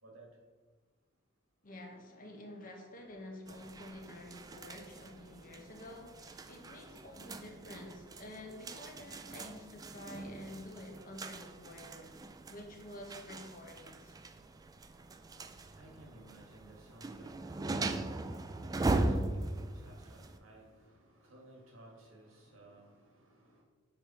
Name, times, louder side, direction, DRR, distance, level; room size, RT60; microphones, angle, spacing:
voice 1, 0.0-0.4 14.8-23.6, right 1 dB, 90° right, -1 dB, 1.8 m, -58 dB
voice 2, 1.6-12.1 12.5-14.2, left 1 dB, 45° left, 2 dB, 0.9 m, -49 dB
sound 1, 3.5-20.4, right 2 dB, 20° right, 0.3 m, -40 dB
5.3 x 4.6 x 4.3 m, 1.4 s
head